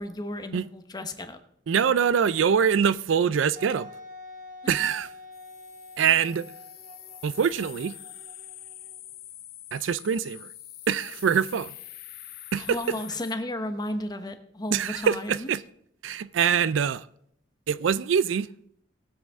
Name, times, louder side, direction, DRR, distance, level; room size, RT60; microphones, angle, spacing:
voice 1, 0.0-1.4 4.6-4.7 12.6-15.5, left 1 dB, 20° left, 1.0 m, -34 dB
voice 2, 1.7-3.9 4.7-5.1 6.0-6.5 7.2-7.9 9.7-10.5 10.9-11.7 12.5-12.8 14.7-15.6 16.0-17.1 17.7-18.5, right 7 dB, 75° right, 0.4 m, -24 dB
Wind instrument woodwind instrument, 3.6-9.1, left 2 dB, 45° right, 1.1 m, -46 dB
sound 1, 5.3-13.4, left 13 dB, 55° left, 0.7 m, -45 dB
19.0 x 7.8 x 3.6 m
head